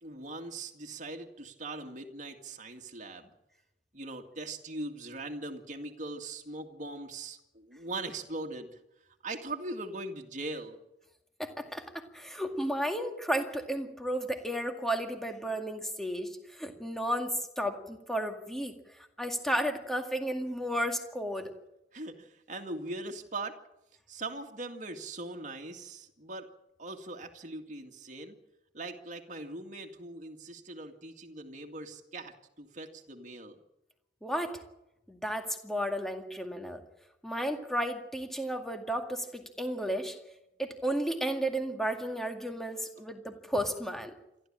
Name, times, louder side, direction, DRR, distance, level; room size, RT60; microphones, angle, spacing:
voice 1, 0.0-3.3 3.9-8.7 9.2-10.8 21.9-23.6 24.1-26.5 26.8-28.4 28.7-33.6, right 2 dB, 40° right, 3 dB, 2.1 m, -40 dB
voice 2, 11.4-18.7 19.2-21.5 34.2-34.6 35.1-36.8 37.2-40.2 40.6-44.1, equal, ahead, 4 dB, 2.0 m, -33 dB
27.5 x 12.5 x 8.8 m, 0.89 s
head